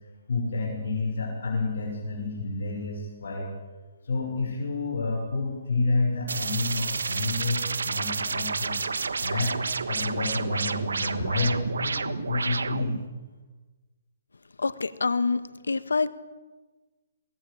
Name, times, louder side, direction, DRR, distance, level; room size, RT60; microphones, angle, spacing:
voice 1, 0.3-3.5 4.0-9.5 9.9-13.0, left 3 dB, 70° left, 0 dB, 6.1 m, -29 dB
sound 1, 6.3-13.0, right 4 dB, 85° right, 1.4 m, -30 dB
voice 2, 14.6-16.1, left 4 dB, 90° left, 15 dB, 1.4 m, -26 dB
23.0 x 18.0 x 8.7 m, 1.3 s
hypercardioid pair, 145°, 0 cm